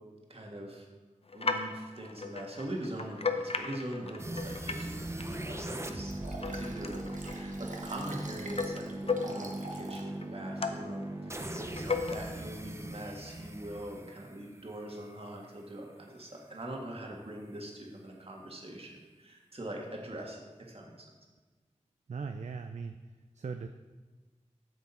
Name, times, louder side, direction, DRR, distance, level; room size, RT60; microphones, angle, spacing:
voice 1, 0.3-0.9 1.3-6.1 6.4-20.4 20.7-21.1, right 1 dB, 50° right, -1 dB, 1.6 m, -42 dB
sound 1, 1.3-4.9 5.2-9.7 10.1-11.0 11.4-12.2, left 4 dB, 50° left, 0.6 m, -36 dB
sound 2, 4.2-15.1, right 1 dB, 20° right, 0.7 m, -40 dB
Liquid, 5.9-10.1 10.6-10.7, right 2 dB, 85° right, 0.9 m, -46 dB
voice 2, 22.1-23.0 23.3-23.7, right 5 dB, 70° right, 7 dB, 0.4 m, -38 dB
8.1 x 6.5 x 4.2 m, 1.3 s
wide cardioid pair, 45°, 13 cm